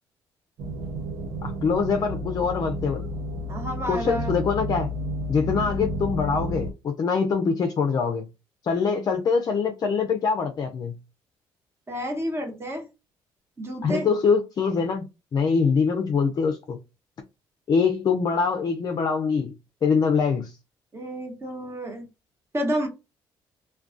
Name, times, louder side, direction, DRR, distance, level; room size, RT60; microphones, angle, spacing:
sound 1, 0.6-6.7, equal, 75° right, 0.7 m, -31 dB
voice 1, 1.4-3.0 3.9-4.9 5.3-8.3 8.6-10.9 13.8-15.1 15.3-16.8 17.7-19.5 19.8-20.5, left 5 dB, 45° left, 0.4 m, -24 dB
voice 2, 3.5-4.3 11.9-12.8 13.6-14.1 20.9-22.1 22.5-22.9, equal, 25° right, 1.0 m, -30 dB
2.3 x 2.2 x 2.5 m
cardioid pair, 85°, 10 cm